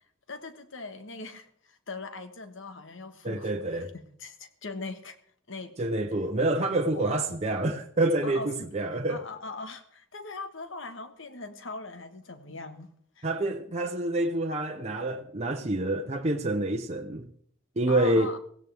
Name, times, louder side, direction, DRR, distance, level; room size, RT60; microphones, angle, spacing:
voice 1, 0.3-5.2 5.5-5.9 6.9-7.1 8.2-8.7 9.1-13.3 17.9-18.4, left 3 dB, 70° left, 1.4 m, -41 dB
voice 2, 3.2-3.9 5.8-9.2 13.2-17.3 17.8-18.3, right 2 dB, 35° right, 0.8 m, -27 dB
16.5 x 16.5 x 3.5 m
head